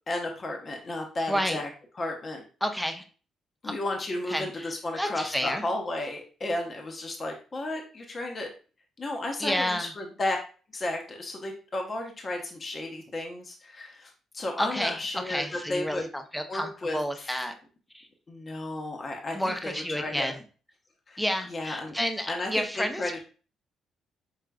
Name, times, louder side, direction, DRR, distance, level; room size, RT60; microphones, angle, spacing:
voice 1, 0.1-1.7 2.0-2.4 3.6-8.5 9.0-10.4 10.7-16.0 16.5-17.5 18.3-20.3 21.1-21.2 21.5-21.9 22.3-23.2, left 2 dB, 35° left, 2 dB, 0.8 m, -33 dB
voice 2, 1.3-1.6 2.6-3.0 3.6-3.7 4.3-4.7 5.0-5.7 9.4-9.9 14.6-17.5 17.9-18.1 19.3-20.4 21.2-23.2, equal, 5° left, 6 dB, 0.6 m, -30 dB
4.8 x 3.6 x 2.2 m, 0.37 s
cardioid pair, 90°, 0 cm